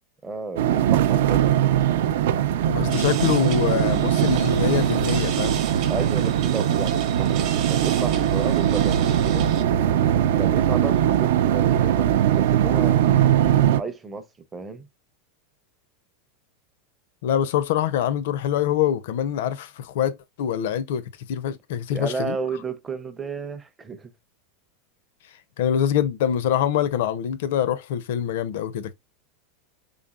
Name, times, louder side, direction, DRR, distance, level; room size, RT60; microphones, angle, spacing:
voice 1, 0.2-1.6 5.9-9.5 9.9-13.1 13.7-14.3 14.5-14.9 21.9-24.1, right 4 dB, 10° right, 0.5 m, -33 dB
sound 1, 0.6-13.8, right 11 dB, 75° right, 0.4 m, -21 dB
voice 2, 2.7-5.6 17.2-22.4 25.6-28.9, left 9 dB, 65° left, 0.5 m, -24 dB
sound 2, 2.9-9.6, right 6 dB, 45° right, 0.8 m, -33 dB
3.9 x 3.5 x 2.3 m
supercardioid pair, 165°, 0 cm